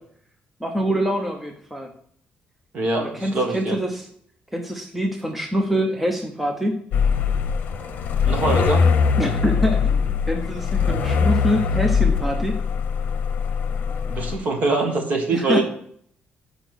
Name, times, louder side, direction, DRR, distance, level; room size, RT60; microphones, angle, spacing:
voice 1, 0.6-1.9 3.0-4.0 4.5-6.8 9.2-10.0 10.3-12.6 15.3-15.6, equal, 5° right, 3 dB, 0.7 m, -25 dB
voice 2, 2.7-3.8 8.2-8.9 14.1-15.6, right 3 dB, 50° right, 2 dB, 1.7 m, -23 dB
sound 1, 6.9-14.4, left 6 dB, 60° left, 0.8 m, -21 dB
7.0 x 5.1 x 6.1 m, 0.65 s
cardioid pair, 170°, 3 cm